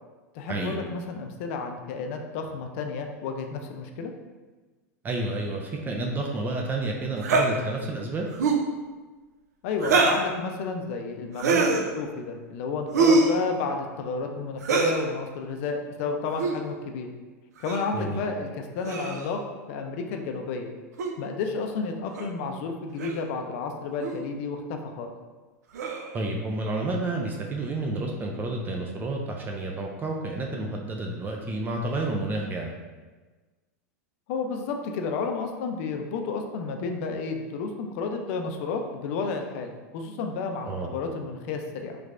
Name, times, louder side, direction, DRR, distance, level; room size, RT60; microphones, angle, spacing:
voice 1, 0.3-4.1 9.6-11.6 11.9-17.1 17.6-19.4 19.7-20.7 21.2-25.1 34.3-42.0, left 4 dB, 60° left, 4 dB, 0.4 m, -31 dB
voice 2, 5.0-8.3 17.9-18.2 26.1-32.7 40.7-40.9, right 2 dB, 20° right, 1 dB, 0.4 m, -30 dB
sound 1, 7.2-7.5 8.3-8.7 9.8-10.3 11.4-11.8 12.9-13.4 14.6-15.0 16.3-16.6 17.6-17.9 18.8-19.3 21.0-21.1 22.2-22.3 23.0-23.2 24.0-24.2 25.7-26.1, right 3 dB, 90° right, 0.4 m, -23 dB
3.2 x 3.1 x 2.5 m, 1.3 s
supercardioid pair, 125°, 9 cm